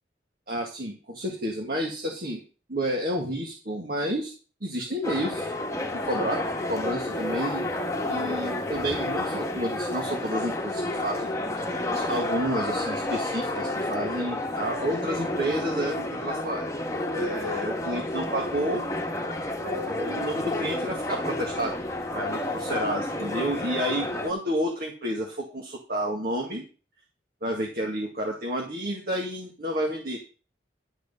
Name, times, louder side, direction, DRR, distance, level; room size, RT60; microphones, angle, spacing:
voice 1, 0.5-2.4 2.7-4.3 4.6-5.5 5.9-6.4 6.7-7.7 8.1-11.7 11.9-16.6 17.1-18.8 19.6-21.7 22.1-26.6 27.4-30.2, right 1 dB, 50° right, 0 dB, 2.0 m, -30 dB
sound 1, 5.0-24.3, left 1 dB, 15° left, 1.4 m, -30 dB
12.0 x 5.0 x 6.7 m, 0.35 s
head